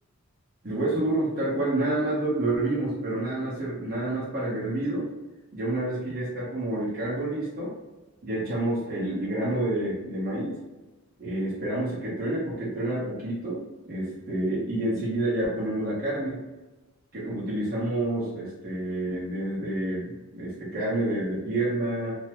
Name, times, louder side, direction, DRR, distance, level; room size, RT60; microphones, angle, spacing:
voice 1, 0.6-5.1 5.5-7.7 8.2-10.6 11.2-16.4 17.1-22.2, right 1 dB, 45° right, -8 dB, 1.0 m, -28 dB
2.6 x 2.1 x 3.0 m, 1.1 s
head